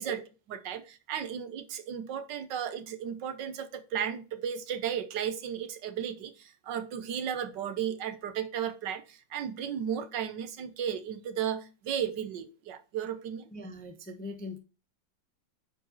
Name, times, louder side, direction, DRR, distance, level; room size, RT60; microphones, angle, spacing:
voice 1, 0.0-13.5, right 8 dB, 70° right, 1.5 m, -34 dB
voice 2, 13.5-14.6, left 2 dB, 10° left, 0.5 m, -41 dB
9.5 x 4.8 x 3.0 m
omnidirectional pair, 2.0 m